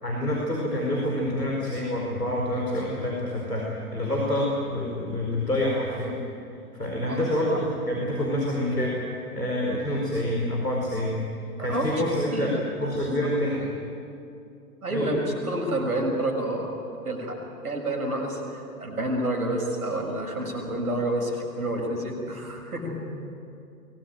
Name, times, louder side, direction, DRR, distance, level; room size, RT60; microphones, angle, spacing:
voice 1, 0.0-6.2 6.7-11.2 11.6-13.6 14.9-15.1, left 1 dB, 85° left, -2 dB, 4.7 m, -27 dB
voice 2, 7.1-7.6 11.6-11.9 12.3-12.5 13.0-13.1 14.8-16.7 17.0-23.2, right 1 dB, 70° right, 0 dB, 6.6 m, -29 dB
24.5 x 19.0 x 9.1 m, 2.6 s
figure-of-eight pair, 110°, 46 cm